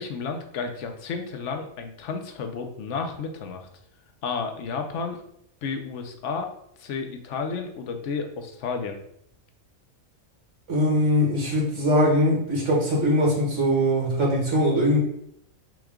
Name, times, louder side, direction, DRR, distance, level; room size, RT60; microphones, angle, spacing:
voice 1, 0.0-3.7 4.2-5.2 5.6-6.5 6.8-9.0, left 5 dB, 65° left, 5 dB, 0.9 m, -32 dB
voice 2, 10.7-15.0, equal, 60° right, -3 dB, 1.8 m, -21 dB
6.1 x 2.4 x 3.5 m, 0.72 s
omnidirectional pair, 1.4 m